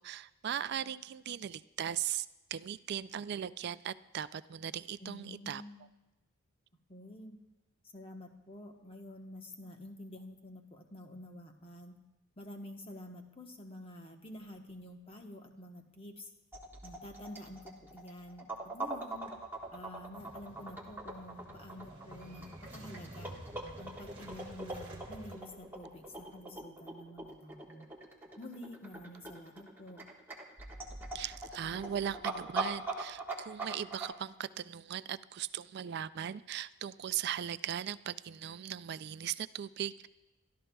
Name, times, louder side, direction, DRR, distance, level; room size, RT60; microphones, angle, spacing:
voice 1, 0.0-5.6 31.1-40.1, right 9 dB, 50° right, 15 dB, 0.3 m, -38 dB
voice 2, 5.0-5.9 6.9-7.4 7.9-12.0 12.4-16.3 16.8-19.3 19.7-23.4 23.8-27.9 28.4-30.0, left 1 dB, 25° left, 3 dB, 1.1 m, -49 dB
sound 1, 16.5-34.1, right 3 dB, 10° right, 1.4 m, -42 dB
Motorcycle / Engine starting, 19.1-26.3, right 1 dB, 25° right, 2.6 m, -52 dB
28.0 x 13.0 x 2.3 m, 1.0 s
head